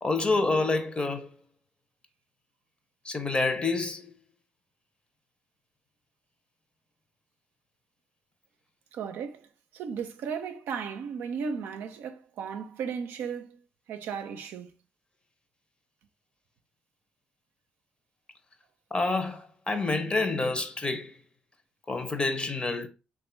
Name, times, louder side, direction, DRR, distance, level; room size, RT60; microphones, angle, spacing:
voice 1, 0.0-1.3 3.0-4.1 18.9-21.2 21.9-22.9, left 3 dB, 25° left, 0.7 m, -28 dB
voice 2, 8.9-9.5 9.7-13.6 13.9-14.7, right 6 dB, 80° right, 0.5 m, -35 dB
3.2 x 2.4 x 4.4 m
supercardioid pair, 55°, 4 cm